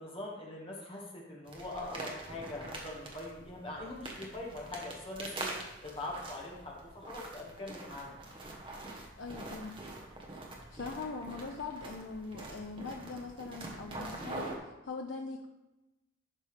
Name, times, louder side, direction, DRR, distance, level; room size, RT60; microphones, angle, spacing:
voice 1, 0.0-5.5 5.8-8.2, left 2 dB, 25° left, -3 dB, 1.6 m, -42 dB
sound 1, 1.5-14.6, right 2 dB, 25° right, 1.1 m, -45 dB
voice 2, 9.2-9.8 10.7-15.5, left 4 dB, 65° left, 3 dB, 0.5 m, -42 dB
11.0 x 5.4 x 3.3 m, 1.0 s
head